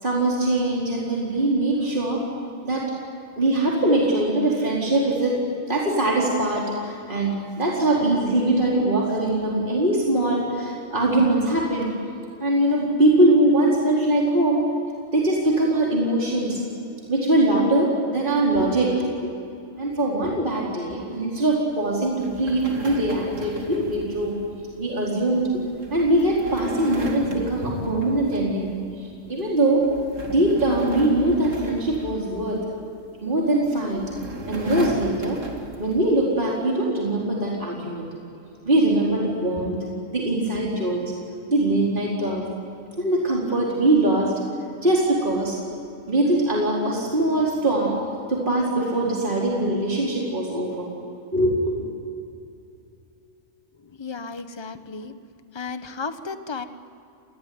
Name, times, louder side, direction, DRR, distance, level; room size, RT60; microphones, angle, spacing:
voice 1, 0.0-2.2 2.6-2.9 3.4-11.9 12.4-14.7 15.1-16.6 17.1-19.1 19.8-24.4 24.8-25.5 25.9-28.7 29.3-29.9 30.3-32.6 33.2-34.1 34.5-35.4 35.8-38.1 38.6-39.8 40.1-41.1 41.5-42.5 43.0-44.3 44.8-45.6 46.1-48.0 48.3-50.9 51.3-51.9, right 1 dB, 40° right, -4 dB, 4.5 m, -22 dB
sound 1, 22.2-28.7 29.1-29.4 29.8-32.8 33.6-36.1, right 1 dB, 75° right, 3.0 m, -35 dB
voice 2, 53.8-55.2 55.5-56.6, left 4 dB, 20° left, 9 dB, 1.2 m, -34 dB
29.0 x 21.5 x 9.6 m, 2.7 s
omnidirectional pair, 1.3 m